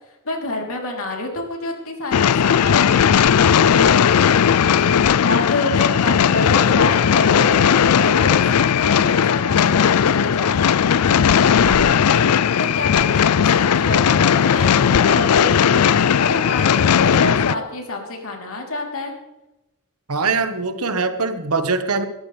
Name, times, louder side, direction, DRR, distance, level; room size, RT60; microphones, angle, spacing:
voice 1, 0.3-4.9 5.2-10.7 11.0-12.3 12.6-19.1, left 2 dB, 70° left, 1 dB, 3.5 m, -28 dB
sound 1, 2.1-17.5, left 8 dB, 85° left, 0.4 m, -16 dB
sound 2, 6.8-12.0 12.4-15.2, right 1 dB, 5° right, 2.6 m, -39 dB
voice 2, 20.1-22.0, right 4 dB, 75° right, 9 dB, 1.4 m, -22 dB
21.0 x 13.5 x 3.4 m, 0.96 s
head